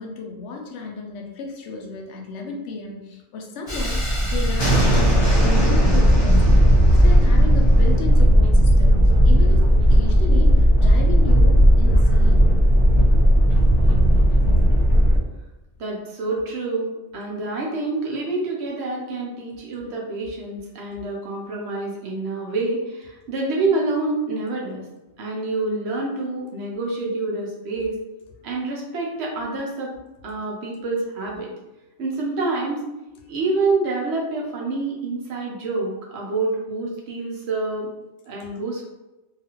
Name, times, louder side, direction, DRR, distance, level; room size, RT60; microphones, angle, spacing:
voice 1, 0.0-6.6 6.9-12.5, left 3 dB, 85° left, 1 dB, 0.9 m, -33 dB
Thunderstorm, 3.7-15.2, equal, 25° left, 0.8 m, -15 dB
voice 2, 15.8-24.8 25.2-27.9 28.4-29.9 30.2-31.5 32.0-32.8 33.3-37.9 38.3-38.8, right 3 dB, 70° right, -2 dB, 1.0 m, -27 dB
2.7 x 2.4 x 2.9 m, 1.0 s
omnidirectional pair, 1.2 m